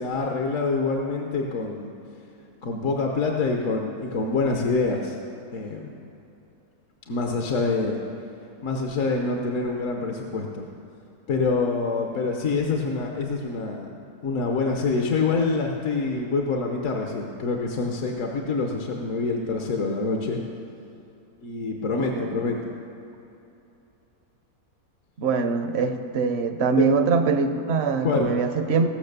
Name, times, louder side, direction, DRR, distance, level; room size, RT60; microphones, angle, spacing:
voice 1, 0.0-1.9 2.6-5.2 5.5-6.0 7.1-8.0 8.6-10.7 11.3-13.9 14.2-20.4 21.4-22.7 26.8-26.9 28.0-28.3, left 3 dB, 60° left, 1 dB, 1.2 m, -26 dB
voice 2, 22.0-22.3 25.2-29.0, right 4 dB, 55° right, 7 dB, 0.9 m, -23 dB
17.0 x 6.3 x 6.6 m, 2.9 s
omnidirectional pair, 1.6 m